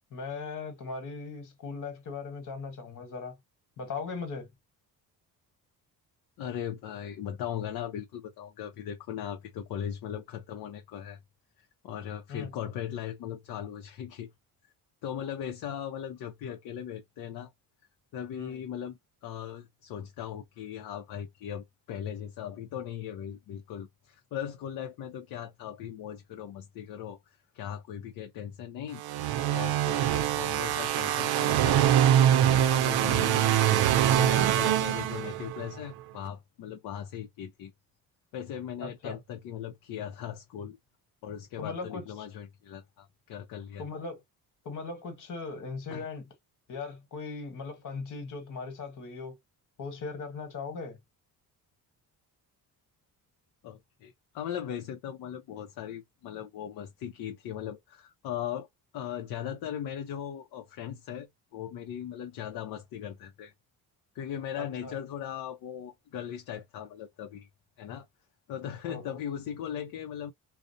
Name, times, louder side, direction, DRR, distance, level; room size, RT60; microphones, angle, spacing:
voice 1, 0.1-3.4 3.8-4.5 12.3-12.5 18.3-18.6 38.8-39.2 41.6-42.3 43.8-44.2 44.6-46.2 46.7-49.4 49.8-51.0 64.6-65.0 68.9-69.1, left 4 dB, 55° left, 1.2 m, -38 dB
voice 2, 6.4-11.2 11.6-14.3 14.6-14.7 15.0-17.5 18.1-29.0 29.5-32.0 32.5-37.7 38.3-40.8 41.2-43.9 45.9-46.1 53.6-58.7 58.9-63.5 64.1-67.5 67.8-68.1 68.5-70.3, left 9 dB, 70° left, 0.6 m, -38 dB
sound 1, 29.0-35.7, right 11 dB, 80° right, 0.5 m, -24 dB
2.5 x 2.0 x 2.5 m
cardioid pair, 115°, 37 cm